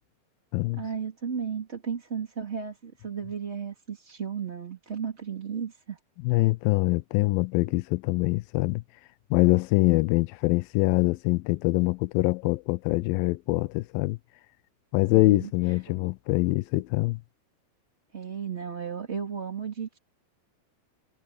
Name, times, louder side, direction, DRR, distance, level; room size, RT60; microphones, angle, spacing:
voice 1, 0.7-6.0 15.1-16.1 18.1-20.0, right 7 dB, 20° right, 2.2 m, -34 dB
voice 2, 6.2-8.8 9.3-14.2 14.9-17.2, left 21 dB, 80° left, 2.3 m, -24 dB
omnidirectional pair, 4.4 m